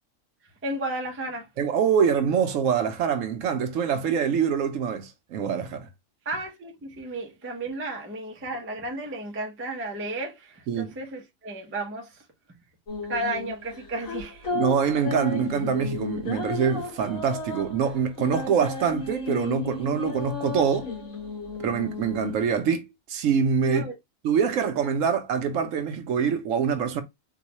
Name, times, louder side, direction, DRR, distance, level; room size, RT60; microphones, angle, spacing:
voice 1, 0.4-1.5 6.2-12.3 13.1-14.5 23.6-24.0, right 2 dB, 20° right, 0.4 m, -33 dB
voice 2, 1.6-5.9 10.7-10.9 14.5-20.9 21.6-22.8 23.1-23.8 24.2-27.0, right 7 dB, 70° right, 1.0 m, -25 dB
sound 1, 12.9-22.6, left 4 dB, 80° left, 2.0 m, -34 dB
3.8 x 2.2 x 2.8 m
omnidirectional pair, 1.4 m